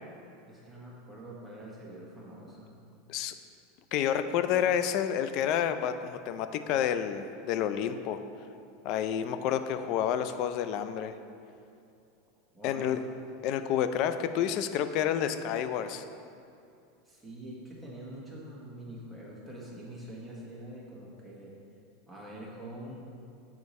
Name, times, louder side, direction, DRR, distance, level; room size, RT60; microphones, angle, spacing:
voice 1, 0.5-2.7 12.5-12.9 17.0-21.6 22.1-23.1, right 1 dB, 5° right, -6 dB, 1.4 m, -45 dB
voice 2, 3.9-8.2 8.8-11.1 12.6-13.0 13.4-16.0, left 9 dB, 55° left, 10 dB, 0.4 m, -29 dB
7.0 x 4.6 x 4.2 m, 2.6 s
supercardioid pair, 125°, 0 cm